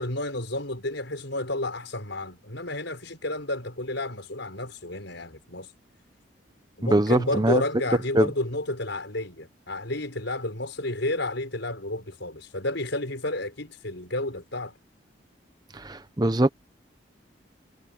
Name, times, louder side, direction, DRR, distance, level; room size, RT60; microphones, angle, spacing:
voice 1, 0.0-5.7 6.8-14.7, left 1 dB, 70° left, 5.6 m, -31 dB
voice 2, 6.8-7.6 8.1-8.3 15.7-16.5, right 1 dB, 20° right, 0.7 m, -22 dB
head